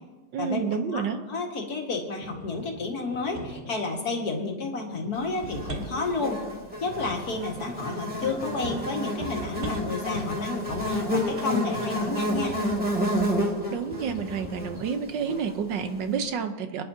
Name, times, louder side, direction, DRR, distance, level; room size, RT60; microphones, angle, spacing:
voice 1, 0.3-1.2 13.7-16.8, right 6 dB, 75° right, 8 dB, 1.6 m, -29 dB
voice 2, 0.9-6.4 6.8-12.6, left 3 dB, 55° left, 1 dB, 2.2 m, -31 dB
sound 1, 2.2-3.8 4.9-13.4 13.9-14.7, right 1 dB, 40° right, 1.8 m, -40 dB
Buzz, 5.5-15.9, equal, 5° right, 2.2 m, -30 dB
25.5 x 10.5 x 2.8 m, 1.2 s
omnidirectional pair, 2.0 m